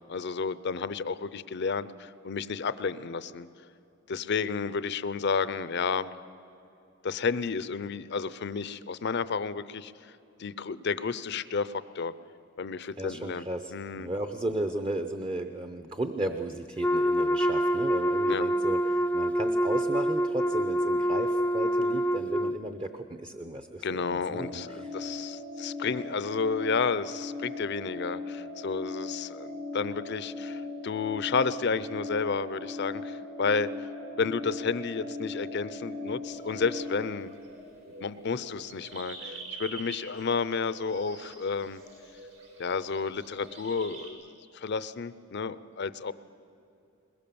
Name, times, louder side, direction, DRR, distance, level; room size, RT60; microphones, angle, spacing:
voice 1, 0.1-3.5 4.1-6.1 7.0-10.1 10.4-12.1 12.6-14.1 18.3-18.5 23.8-33.9 34.2-37.3 38.0-41.8 42.6-46.1, left 5 dB, 60° left, 15 dB, 0.6 m, -31 dB
voice 2, 13.0-24.9, right 1 dB, 25° right, 8 dB, 0.7 m, -35 dB
Wind instrument woodwind instrument, 16.8-22.6, equal, 10° left, 0.5 m, -26 dB
sound 1, 24.3-37.1, left 2 dB, 60° right, 3.6 m, -39 dB
sound 2, 36.2-44.1, right 3 dB, 75° right, 5.2 m, -46 dB
21.5 x 21.5 x 7.0 m, 2.7 s
head